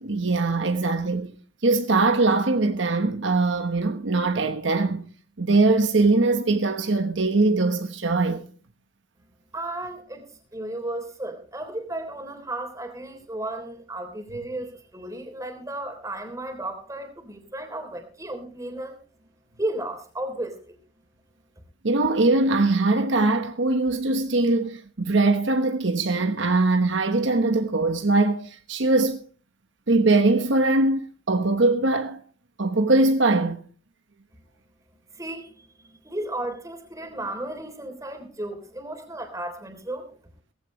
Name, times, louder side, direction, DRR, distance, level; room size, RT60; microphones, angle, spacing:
voice 1, 0.0-1.3 1.6-5.1 5.4-8.4 21.8-29.2 29.9-32.2 32.6-33.6, right 2 dB, 70° right, 1.2 m, -21 dB
voice 2, 9.5-19.0 19.6-20.8 35.1-40.1, right 1 dB, 15° right, 3.3 m, -34 dB
18.0 x 15.0 x 3.2 m
head